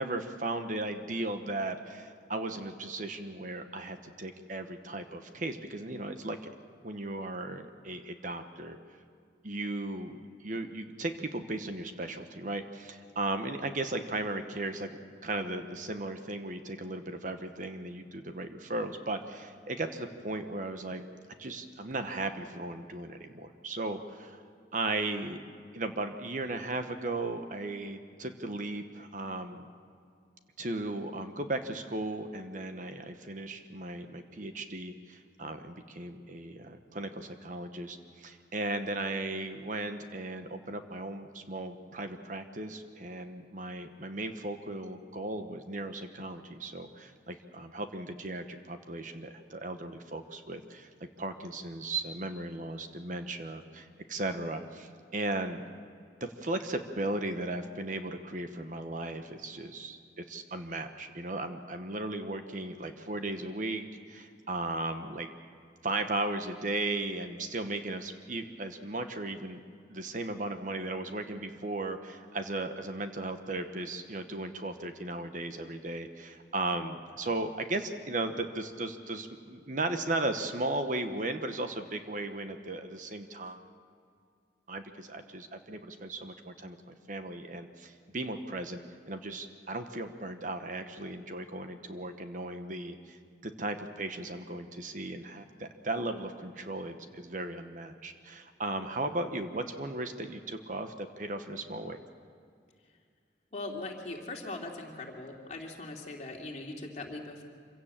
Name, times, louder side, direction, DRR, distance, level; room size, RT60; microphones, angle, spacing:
voice 1, 0.0-6.4 6.8-8.8 9.4-14.9 15.2-21.1 21.4-24.4 24.7-25.4 25.7-29.7 30.6-55.6 56.2-65.3 65.8-69.6 69.9-83.6 84.7-88.8 89.1-102.0, right 2 dB, 45° right, 7 dB, 1.1 m, -36 dB
voice 2, 103.5-107.4, left 2 dB, 40° left, 0 dB, 2.8 m, -40 dB
25.5 x 16.5 x 7.4 m, 2.3 s
head